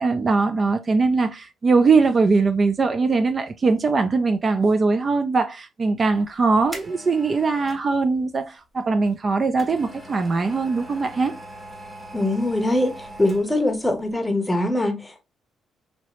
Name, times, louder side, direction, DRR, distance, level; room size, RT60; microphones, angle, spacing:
voice 1, 0.0-11.3, right 4 dB, 40° right, 0.3 m, -21 dB
sound 1, 6.1-7.9 9.1-13.7 14.0-14.1, right 1 dB, 15° right, 1.1 m, -41 dB
voice 2, 12.1-15.2, left 1 dB, 10° left, 0.8 m, -23 dB
3.1 x 2.7 x 2.9 m
cardioid pair, 90°, 0 cm